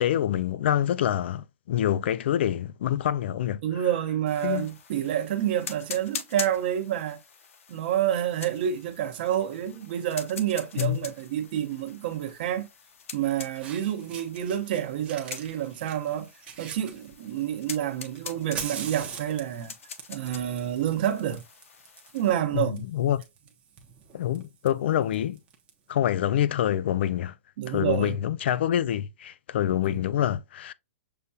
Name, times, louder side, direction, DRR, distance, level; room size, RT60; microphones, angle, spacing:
voice 1, 0.0-3.6 4.4-4.7 10.8-11.0 22.5-23.2 24.1-25.4 25.9-27.3 27.7-30.7, left 11 dB, 55° left, 0.3 m, -26 dB
voice 2, 3.6-7.2 7.7-12.7 13.1-16.3 16.6-19.7 20.1-21.4 22.1-22.9 27.6-28.2 29.8-30.0, right 11 dB, 45° right, 0.8 m, -28 dB
sound 1, 4.3-22.3, left 6 dB, 80° left, 0.8 m, -44 dB
Fire, 10.5-10.8 12.2-12.3 13.2-13.3 13.6-14.8 15.1-17.5 18.0-25.7, right 7 dB, 15° right, 0.6 m, -43 dB
6.6 x 2.3 x 2.6 m
hypercardioid pair, 165°, 7 cm